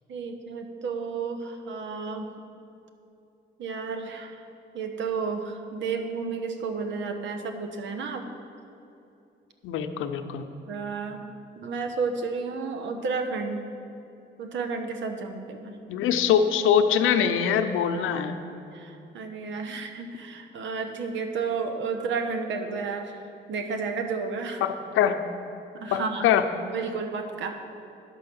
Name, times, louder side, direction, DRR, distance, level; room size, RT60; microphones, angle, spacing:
voice 1, 0.1-2.3 3.6-4.4 4.7-8.3 10.7-11.3 11.6-13.6 14.4-15.8 18.7-23.2 23.5-24.6 25.7-26.3 26.7-27.6, right 4 dB, 70° right, 5 dB, 1.0 m, -32 dB
voice 2, 9.6-10.5 15.9-18.3 24.6-25.2 25.9-26.4, left 8 dB, 85° left, 8 dB, 0.7 m, -23 dB
10.0 x 5.6 x 6.9 m, 2.7 s
cardioid pair, 90°, 20 cm